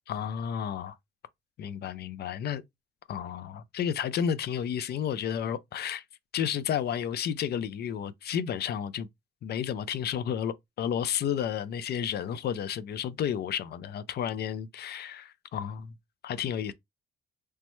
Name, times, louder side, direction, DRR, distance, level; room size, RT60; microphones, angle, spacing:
voice 1, 0.1-0.9 1.6-2.6 3.1-6.0 6.3-9.1 9.4-15.9 16.2-16.7, left 8 dB, 55° left, 0.4 m, -32 dB
3.2 x 2.0 x 3.0 m
cardioid pair, 90°, 20 cm